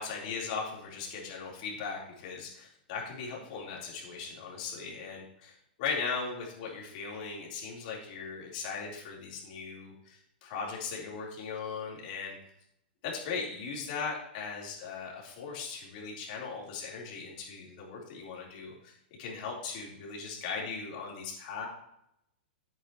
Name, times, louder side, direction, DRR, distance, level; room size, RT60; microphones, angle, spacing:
voice 1, 0.0-12.4 13.0-21.7, left 5 dB, 55° left, -3 dB, 3.8 m, -38 dB
10.0 x 9.1 x 3.1 m, 0.76 s
hypercardioid pair, 120°, 5 cm